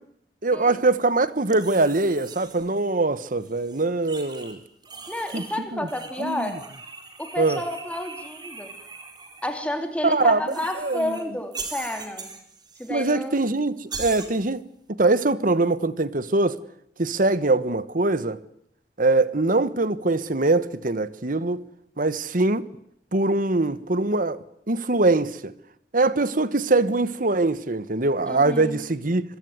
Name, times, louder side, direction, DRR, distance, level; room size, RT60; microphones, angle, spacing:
voice 1, 0.4-4.6 5.3-5.9 6.2-6.5 7.4-7.6 10.0-11.2 12.9-14.6 14.9-16.6 17.0-18.4 19.0-21.6 22.0-22.6 23.1-24.4 24.7-25.5 25.9-29.2, right 2 dB, 50° right, 1.3 m, -23 dB
sound 1, 1.5-2.7 3.4-4.6 4.8-5.6 5.9-9.5 10.5-11.2 11.5-13.0 13.2-13.3 13.9-14.3, right 4 dB, 25° right, 4.2 m, -40 dB
voice 2, 5.1-6.6 7.2-8.7 9.4-12.3 12.8-13.4 28.3-28.8, left 1 dB, 10° left, 3.5 m, -30 dB
26.0 x 22.0 x 9.6 m
head